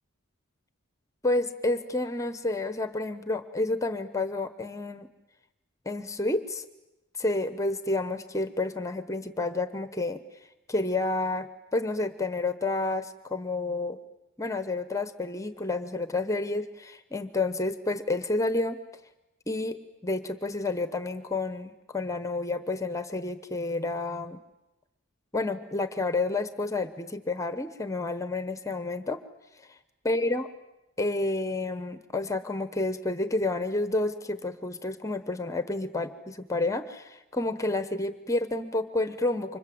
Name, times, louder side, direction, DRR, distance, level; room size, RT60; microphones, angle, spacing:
voice 1, 1.2-5.1 5.9-6.7 7.2-10.2 10.7-14.0 14.4-18.8 19.5-19.8 20.0-24.4 25.3-29.2 30.0-30.5 31.0-39.6, left 2 dB, 15° left, 11 dB, 0.9 m, -30 dB
29.5 x 25.5 x 7.7 m, 0.95 s
head